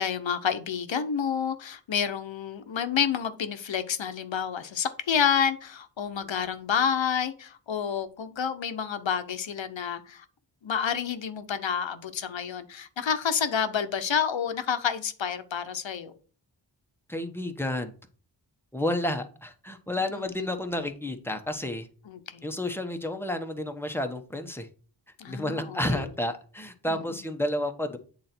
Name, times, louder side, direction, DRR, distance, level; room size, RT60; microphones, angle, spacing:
voice 1, 0.0-10.2 10.6-16.1 22.1-22.4 25.2-26.1 26.9-27.0, left 7 dB, 80° left, 0.9 m, -29 dB
voice 2, 17.1-18.0 18.7-21.9 22.4-24.7 25.3-28.0, left 1 dB, 5° left, 1.0 m, -31 dB
8.6 x 4.0 x 4.4 m
wide cardioid pair, 70°, 45 cm